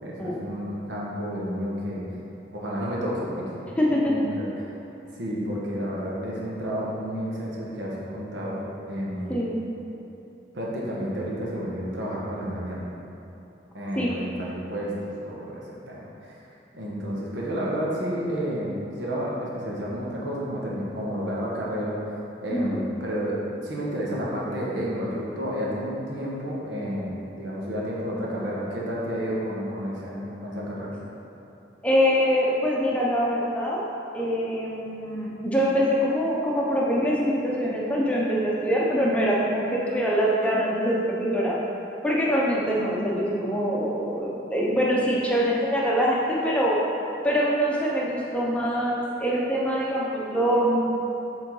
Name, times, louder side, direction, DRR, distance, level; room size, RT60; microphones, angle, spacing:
voice 1, 0.0-2.0 2.5-3.5 3.9-4.5 5.2-8.6 8.9-9.3 10.5-12.8 13.7-15.6 15.9-16.3 16.7-22.0 22.4-27.1 27.4-30.9, equal, 85° right, -5 dB, 1.2 m, -31 dB
voice 2, 3.8-4.1 9.3-9.6 14.0-14.1 22.5-22.8 31.8-33.8 34.1-41.5 42.0-46.8 47.2-50.8, equal, 5° left, -5 dB, 0.7 m, -24 dB
7.4 x 3.8 x 3.8 m, 2.9 s
head